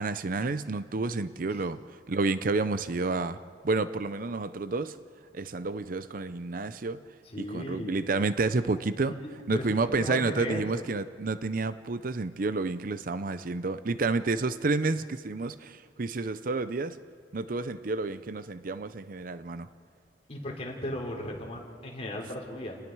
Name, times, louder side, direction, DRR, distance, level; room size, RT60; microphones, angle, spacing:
voice 1, 0.0-1.8 2.1-5.0 5.3-7.0 7.4-9.2 9.5-17.0 17.3-19.7, right 3 dB, 50° right, 13 dB, 0.6 m, -30 dB
voice 2, 7.2-8.1 9.1-10.9 20.3-22.8, left 1 dB, 35° left, 0 dB, 3.6 m, -36 dB
29.5 x 19.5 x 4.7 m, 2.1 s
head